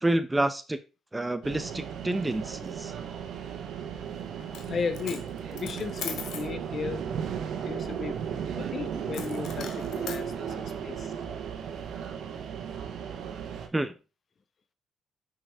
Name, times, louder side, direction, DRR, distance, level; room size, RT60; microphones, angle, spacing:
voice 1, 0.0-0.8 1.1-2.9 13.7-13.9, right 1 dB, 15° right, 0.7 m, -28 dB
sound 1, 1.4-13.7, right 8 dB, 75° right, 1.1 m, -35 dB
Coin (dropping), 4.4-4.7 4.9-6.5 9.1-10.2, left 7 dB, 75° left, 1.3 m, -40 dB
voice 2, 4.7-7.0 7.6-8.2 8.5-11.1, left 5 dB, 45° left, 1.0 m, -35 dB
6.4 x 6.0 x 3.5 m
cardioid pair, 90°, 0 cm